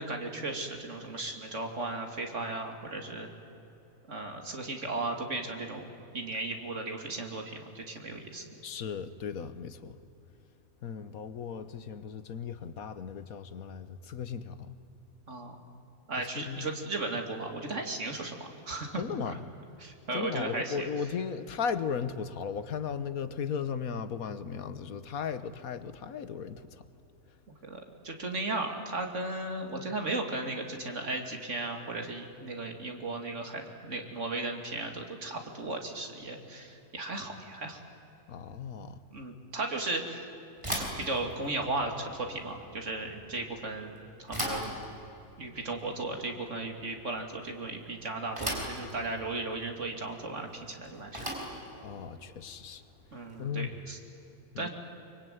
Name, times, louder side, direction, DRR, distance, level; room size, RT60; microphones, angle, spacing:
voice 1, 0.0-3.3 4.1-5.9 6.1-8.5 10.9-11.0 15.3-15.6 16.1-19.4 19.8-20.9 27.6-37.8 39.1-40.3 40.7-44.7 45.4-51.3 53.1-54.0 54.6-54.7, right 2 dB, 55° right, 4 dB, 3.0 m, -36 dB
voice 2, 8.6-9.9 10.8-14.8 16.5-16.7 18.9-19.4 20.1-26.8 38.3-39.0 51.8-52.8 53.4-53.7 54.5-54.7, left 6 dB, 75° left, 12 dB, 1.5 m, -36 dB
Bicycle / Thump thud, 40.6-53.7, equal, 20° right, 5.0 m, -40 dB
25.0 x 24.0 x 9.4 m, 2.9 s
omnidirectional pair, 1.5 m